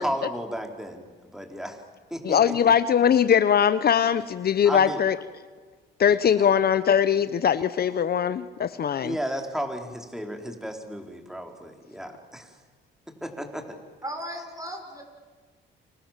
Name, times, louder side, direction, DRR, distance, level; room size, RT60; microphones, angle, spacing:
voice 1, 0.0-1.8 2.1-2.7 4.6-5.0 6.3-6.5 9.0-12.6 13.2-13.8, equal, ahead, 4 dB, 4.2 m, -34 dB
voice 2, 2.2-5.2 6.0-9.1, left 8 dB, 50° left, 13 dB, 1.0 m, -21 dB
voice 3, 14.0-15.0, equal, 15° right, 4 dB, 6.5 m, -36 dB
29.0 x 26.5 x 7.5 m, 1.4 s
cardioid pair, 90°, 20 cm